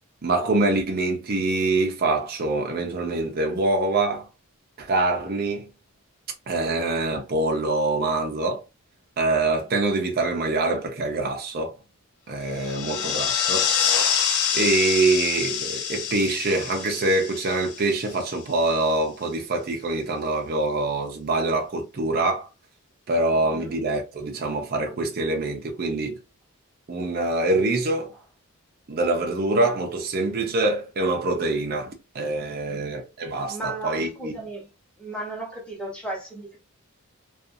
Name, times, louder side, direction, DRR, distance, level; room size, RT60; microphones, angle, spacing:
voice 1, 0.2-4.3 4.8-5.7 6.5-8.6 9.2-11.7 12.3-14.1 14.5-22.5 23.1-26.2 26.9-28.1 28.9-34.4, right 2 dB, 45° right, 0.5 m, -25 dB
sound 1, 12.5-18.4, left 7 dB, 65° left, 0.5 m, -26 dB
voice 2, 12.6-13.1 23.3-23.8 32.7-32.9 33.4-34.7 35.0-36.6, right 2 dB, 5° left, 0.9 m, -36 dB
2.4 x 2.4 x 2.6 m
head